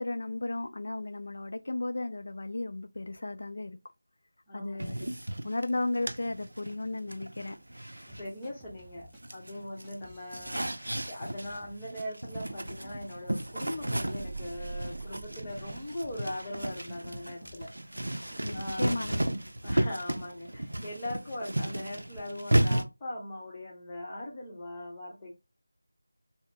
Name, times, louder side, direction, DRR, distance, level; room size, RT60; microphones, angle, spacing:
voice 1, 0.0-3.8 4.5-5.1 5.4-7.6 18.4-19.1, left 2 dB, 50° left, 0.4 m, -34 dB
voice 2, 4.5-5.0 8.2-17.7 18.5-19.2 19.6-25.3, left 1 dB, 15° left, 0.9 m, -40 dB
sound 1, 4.8-8.9 9.2-22.8, right 1 dB, 70° right, 0.5 m, -33 dB
sound 2, 8.1-9.2 9.8-10.6 10.9-12.0 12.3-13.1 13.4-13.5 13.7-17.7 18.0-18.7 19.0-19.2, equal, 5° right, 0.6 m, -55 dB
sound 3, 14.0-16.7, right 4 dB, 20° right, 0.9 m, -43 dB
3.7 x 2.1 x 3.2 m
figure-of-eight pair, 165°, 0 cm